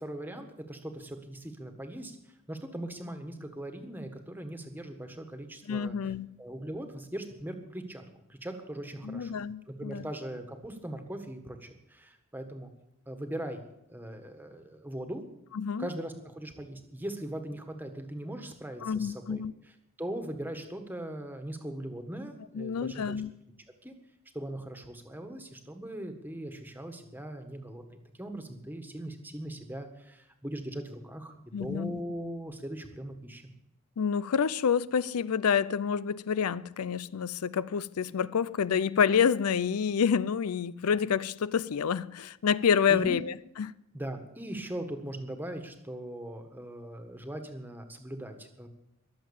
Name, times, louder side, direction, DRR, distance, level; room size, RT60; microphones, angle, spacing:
voice 1, 0.0-8.0 8.3-9.4 9.7-12.7 13.1-13.6 13.9-15.2 15.8-23.2 23.8-23.9 24.3-27.8 28.2-33.4 42.9-43.2 43.9-48.7, right 1 dB, 10° right, 1.5 m, -40 dB
voice 2, 5.7-6.3 9.0-10.1 15.5-15.9 18.8-19.5 22.6-23.3 31.5-32.0 34.0-43.7, left 7 dB, 85° left, 0.5 m, -28 dB
22.0 x 7.6 x 7.1 m
head